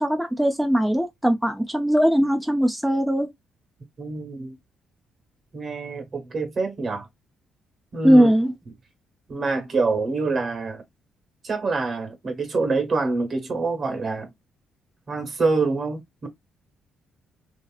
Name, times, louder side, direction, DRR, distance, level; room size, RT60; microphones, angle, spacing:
voice 1, 0.0-3.3 8.0-8.5, equal, 5° right, 0.5 m, -19 dB
voice 2, 4.0-4.6 5.5-7.1 7.9-8.3 9.3-10.8 11.4-14.3 15.1-16.3, right 3 dB, 45° right, 1.4 m, -26 dB
2.9 x 2.8 x 2.3 m
cardioid pair, 90°, 0 cm